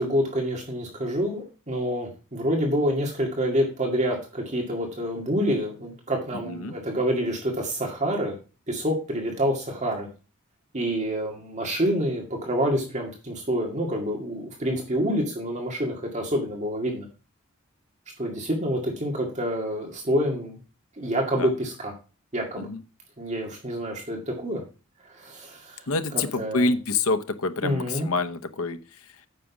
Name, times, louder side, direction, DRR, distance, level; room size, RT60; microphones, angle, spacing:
voice 1, 0.0-8.3 8.7-10.1 10.7-17.1 18.2-20.6 21.0-21.9 22.3-22.7 23.2-24.6 25.0-25.8 26.1-26.7 27.6-28.1, equal, 35° right, 1 dB, 2.1 m, -27 dB
voice 2, 6.3-6.7 21.3-21.5 22.6-22.8 25.9-29.3, left 3 dB, 80° left, 10 dB, 0.9 m, -27 dB
9.1 x 6.3 x 5.9 m, 0.33 s
head